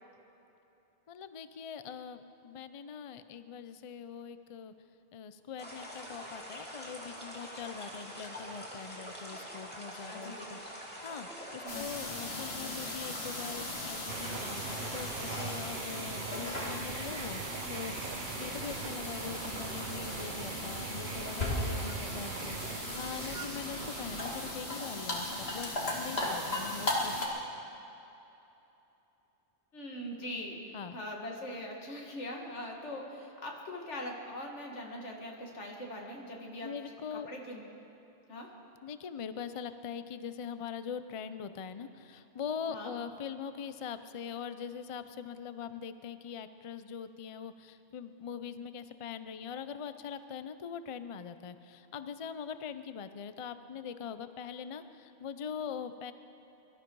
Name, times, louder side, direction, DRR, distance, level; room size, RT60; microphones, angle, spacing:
voice 1, 1.1-4.7 5.1-17.4 17.7-25.7 26.0-27.5 30.7-31.0 36.6-37.3 38.8-56.1, left 7 dB, 45° left, 11 dB, 0.4 m, -42 dB
sound 1, 5.6-15.6, equal, 10° left, 2.6 m, -45 dB
voice 2, 10.0-10.4 11.6-11.9 29.7-36.7 37.1-37.6 38.3-38.5 42.7-42.9, left 1 dB, 85° left, 0 dB, 2.2 m, -42 dB
sound 2, 11.7-27.3, left 2 dB, 60° left, 2.3 m, -37 dB
sound 3, 14.1-24.6, right 8 dB, 55° right, 0.6 m, -42 dB
23.0 x 12.5 x 4.7 m, 3.0 s
omnidirectional pair, 1.2 m